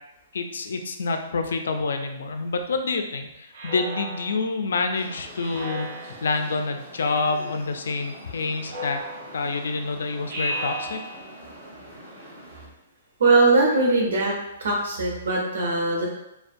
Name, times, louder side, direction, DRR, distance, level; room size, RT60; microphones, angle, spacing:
voice 1, 0.3-9.0 9.3-11.0, left 3 dB, 90° left, 6 dB, 0.3 m, -27 dB
Speech synthesizer, 3.5-4.6 5.4-6.4 7.0-7.6 8.7-9.6 10.3-11.4, equal, 50° right, 0.5 m, -35 dB
sound 1, 4.9-12.7, right 1 dB, 25° right, 1.2 m, -44 dB
voice 2, 13.2-14.3 14.6-16.1, right 3 dB, 85° right, -1 dB, 0.7 m, -20 dB
2.5 x 2.1 x 2.5 m, 0.85 s
hypercardioid pair, 160°, 0 cm